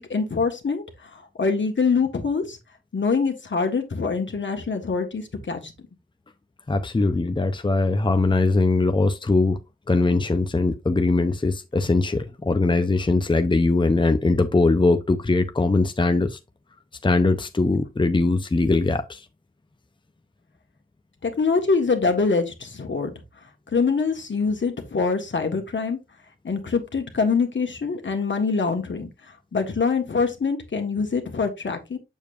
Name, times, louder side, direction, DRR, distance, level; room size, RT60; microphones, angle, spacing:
voice 1, 0.0-2.6 2.9-5.7 21.2-23.1 23.7-26.0 26.4-32.0, left 4 dB, 70° left, 1.6 m, -24 dB
voice 2, 6.7-9.6 9.9-16.4 17.0-19.2, left 3 dB, 25° left, 0.7 m, -21 dB
7.1 x 6.7 x 2.6 m
wide cardioid pair, 60°, 20 cm